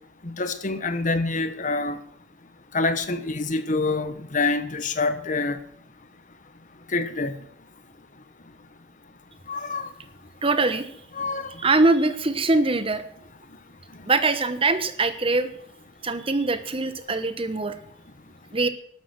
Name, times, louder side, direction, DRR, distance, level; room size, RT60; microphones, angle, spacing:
voice 1, 0.2-2.0 2.7-5.6 6.9-7.3 9.5-9.9 11.2-11.6, left 3 dB, 40° left, 1.3 m, -26 dB
voice 2, 10.4-10.9 11.6-13.0 14.1-15.5 16.0-17.8 18.5-18.7, right 3 dB, 30° right, 1.2 m, -22 dB
12.5 x 12.5 x 6.2 m
head